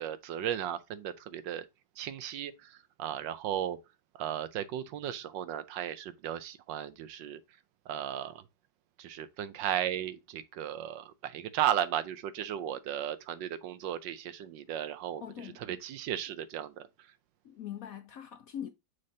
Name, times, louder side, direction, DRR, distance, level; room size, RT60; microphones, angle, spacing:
voice 1, 0.0-1.7 2.0-3.8 4.1-7.4 7.9-8.5 9.0-17.1, right 10 dB, 80° right, 1.4 m, -35 dB
voice 2, 15.2-15.6 17.4-18.7, left 9 dB, 65° left, 0.9 m, -42 dB
6.5 x 5.5 x 2.8 m
omnidirectional pair, 2.0 m